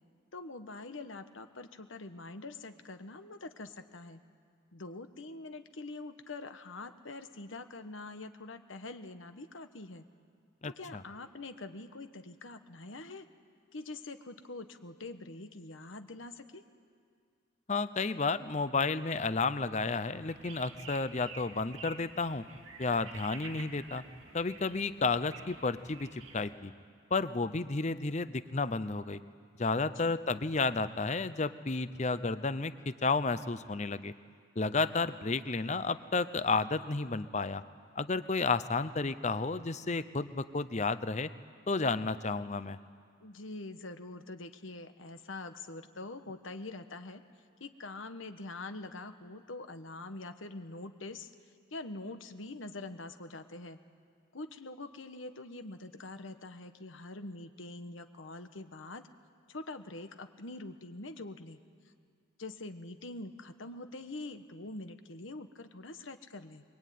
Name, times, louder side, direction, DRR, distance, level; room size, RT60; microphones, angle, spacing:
voice 1, 0.3-4.2 4.7-10.1 10.6-13.3 13.7-16.6 30.0-30.2 43.2-47.2 47.6-51.3 51.7-53.8 54.3-59.0 59.5-61.6 62.4-66.6, left 2 dB, 75° left, 8 dB, 1.3 m, -44 dB
voice 2, 10.6-11.0 17.7-22.4 22.8-24.0 24.3-26.7 27.1-29.2 29.6-34.1 34.6-37.6 38.0-41.3 41.7-42.8, left 3 dB, 35° left, 14 dB, 0.7 m, -32 dB
sound 1, 20.0-26.5, right 4 dB, 85° right, 2.3 m, -50 dB
23.0 x 23.0 x 9.4 m, 2.1 s
head